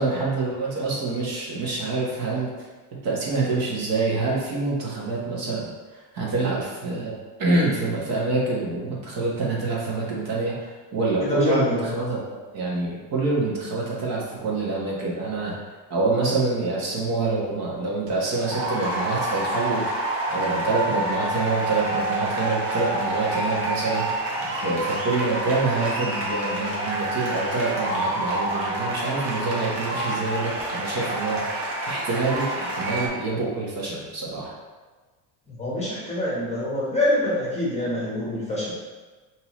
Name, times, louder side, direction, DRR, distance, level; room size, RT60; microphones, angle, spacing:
voice 1, 0.0-2.5 3.0-15.6 15.9-19.9 20.3-24.0 24.6-34.5, right 3 dB, 45° right, -4 dB, 1.3 m, -26 dB
voice 2, 11.2-11.9 35.5-38.7, left 1 dB, 15° left, -7 dB, 1.0 m, -26 dB
sound 1, 18.2-33.1, right 1 dB, 30° right, 0.9 m, -28 dB
5.4 x 2.9 x 3.0 m, 1.3 s
cardioid pair, 160°, 47 cm